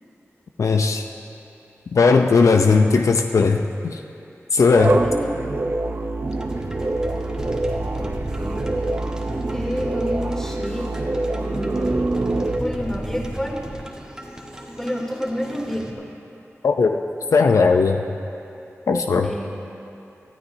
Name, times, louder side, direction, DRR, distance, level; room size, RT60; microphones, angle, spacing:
voice 1, 0.6-1.0 1.9-4.0 4.5-5.0 16.6-17.0 17.3-18.0 18.9-19.3, left 4 dB, 85° left, 4 dB, 0.6 m, -17 dB
sound 1, 4.8-12.6, right 2 dB, 45° right, 0.7 m, -25 dB
voice 2, 5.0-5.4 7.9-8.7 9.5-10.9 11.3-12.2 12.6-13.6 14.7-16.1 19.2-19.6, equal, 10° left, -2 dB, 2.9 m, -29 dB
sound 2, 6.3-15.9, equal, 15° right, 1.5 m, -35 dB
24.0 x 13.0 x 2.8 m, 2.8 s
wide cardioid pair, 70°, 5 cm